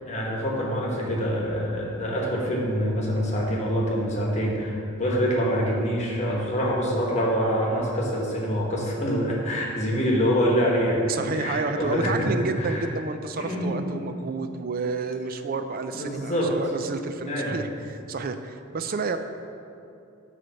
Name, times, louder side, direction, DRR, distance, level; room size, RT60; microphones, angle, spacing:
voice 1, 0.0-12.8 13.4-13.8 15.9-16.5 17.2-17.6, equal, 35° left, -3 dB, 1.3 m, -25 dB
voice 2, 11.1-19.2, right 4 dB, 45° right, 8 dB, 0.4 m, -30 dB
9.1 x 3.3 x 6.7 m, 2.6 s
head